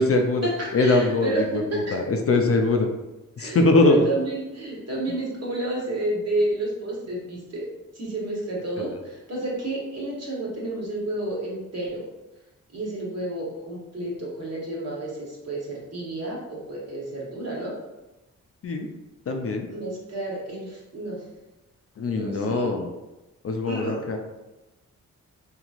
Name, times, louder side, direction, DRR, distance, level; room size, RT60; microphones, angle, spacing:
voice 1, 0.0-0.5 0.7-1.6 1.9-2.9 3.4-4.1 18.6-18.9 19.3-19.7 22.0-22.9 23.4-24.2, left 2 dB, 45° left, 4 dB, 0.4 m, -21 dB
voice 2, 0.6-1.4 1.8-2.0 3.4-12.0 12.7-17.7 19.7-21.2 22.1-22.9 23.7-24.0, right 1 dB, 50° right, -4 dB, 1.3 m, -31 dB
2.9 x 2.8 x 2.4 m, 1.0 s
cardioid pair, 55°, 33 cm